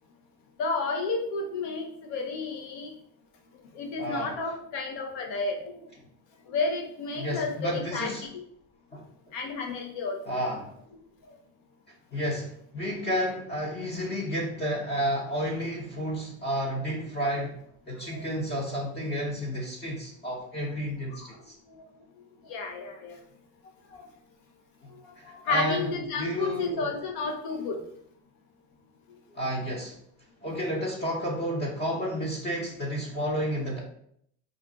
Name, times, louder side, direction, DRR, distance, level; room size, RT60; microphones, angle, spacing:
voice 1, 0.6-2.9 3.7-5.8 6.5-8.4 9.3-10.2 11.3-11.4 18.1-18.2 21.7-21.8 22.4-23.2 23.9-24.1 24.9-27.8, left 3 dB, 85° left, 2 dB, 0.7 m, -32 dB
voice 2, 4.0-4.4 7.1-8.3 8.9-9.0 10.3-10.7 12.1-17.6 17.9-21.5 24.8-24.9 25.2-25.9 26.2-26.9 29.3-30.0 30.4-33.8, equal, 30° left, -3 dB, 0.8 m, -31 dB
2.5 x 2.2 x 3.8 m, 0.69 s
supercardioid pair, 100°, 33 cm